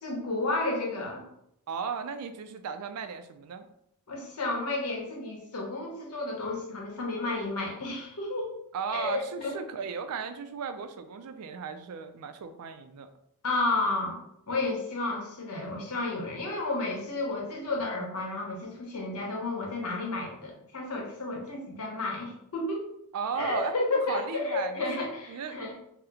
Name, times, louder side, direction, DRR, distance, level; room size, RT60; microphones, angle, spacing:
voice 1, 0.0-1.2 4.1-8.5 8.9-9.5 13.4-14.2 14.5-22.9 23.4-25.7, left 2 dB, 85° left, 0 dB, 0.9 m, -32 dB
voice 2, 1.7-3.7 8.7-13.1 23.1-23.7 24.1-25.8, right 6 dB, 90° right, 9 dB, 0.4 m, -36 dB
2.9 x 2.0 x 3.6 m, 0.76 s
head